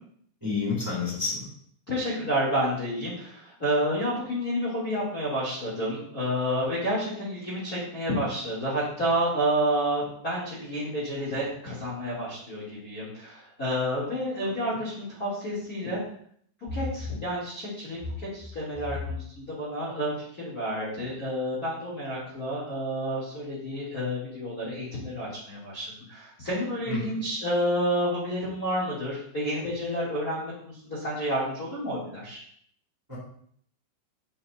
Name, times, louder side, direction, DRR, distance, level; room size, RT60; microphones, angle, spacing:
voice 1, 0.4-1.4 26.9-27.2 33.1-33.2, left 4 dB, 5° right, -6 dB, 2.8 m, -29 dB
voice 2, 1.9-16.0 16.7-32.4, equal, 25° left, -7 dB, 2.4 m, -30 dB
10.5 x 8.5 x 2.7 m, 0.62 s
omnidirectional pair, 5.4 m